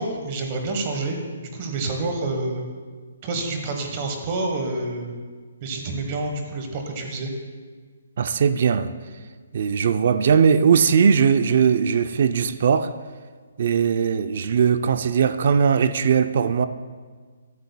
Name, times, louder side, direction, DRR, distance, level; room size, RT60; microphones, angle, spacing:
voice 1, 0.0-2.6 3.2-5.1 5.6-7.3, right 2 dB, 25° right, 4 dB, 1.1 m, -28 dB
voice 2, 8.2-8.9 9.5-12.9 13.6-16.7, right 6 dB, 40° right, 12 dB, 0.4 m, -19 dB
14.0 x 12.0 x 2.2 m, 1.5 s
hypercardioid pair, 175°, 0 cm